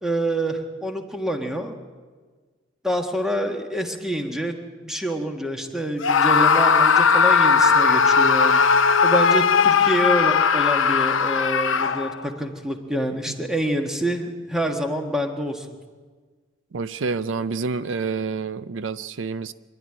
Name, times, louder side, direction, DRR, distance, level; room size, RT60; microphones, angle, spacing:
voice 1, 0.0-1.7 2.8-4.5 4.8-8.6 9.0-15.7, right 1 dB, 5° right, 3 dB, 1.6 m, -26 dB
Screaming, 6.0-12.3, left 5 dB, 85° left, 0.8 m, -18 dB
voice 2, 16.7-19.5, right 4 dB, 75° right, 14 dB, 0.5 m, -28 dB
24.5 x 12.0 x 9.9 m, 1.5 s
head